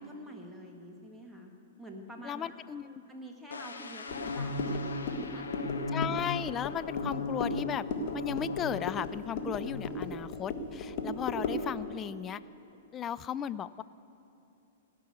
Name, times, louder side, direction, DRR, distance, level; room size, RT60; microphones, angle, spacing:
voice 1, 0.0-1.5 1.8-2.6 3.1-5.5, equal, ahead, -1 dB, 1.7 m, -47 dB
voice 2, 2.2-3.0 5.9-7.8 8.1-12.4 12.9-13.8, left 9 dB, 25° left, 15 dB, 0.3 m, -36 dB
sound 1, 3.5-9.2 9.5-9.8, left 3 dB, 85° left, 0.9 m, -37 dB
sound 2, 4.1-11.7, left 2 dB, 50° left, 1.6 m, -37 dB
17.0 x 6.1 x 8.4 m, 2.7 s
hypercardioid pair, 115°, 0 cm